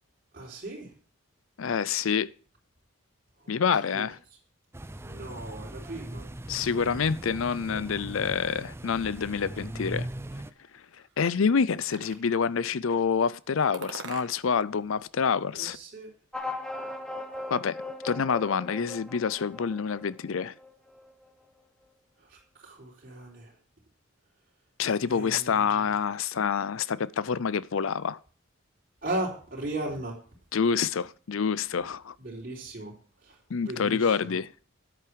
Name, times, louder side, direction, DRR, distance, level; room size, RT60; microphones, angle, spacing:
voice 1, 0.3-0.9 3.4-4.1 5.0-6.3 15.5-16.1 22.2-23.6 25.1-25.8 29.0-30.2 32.2-34.4, right 1 dB, 40° right, 3.8 m, -37 dB
voice 2, 1.6-2.3 3.5-4.2 6.5-10.1 11.2-15.8 17.5-20.5 24.8-28.2 30.5-32.2 33.5-34.5, left 6 dB, 70° left, 0.5 m, -27 dB
sound 1, 4.7-10.5, right 1 dB, 10° right, 0.5 m, -39 dB
sound 2, 10.5-11.5 12.2-12.8 13.7-14.7 15.0-16.0, right 4 dB, 55° right, 1.6 m, -46 dB
sound 3, 16.3-21.3, left 2 dB, 5° left, 1.1 m, -39 dB
10.0 x 8.5 x 4.7 m
head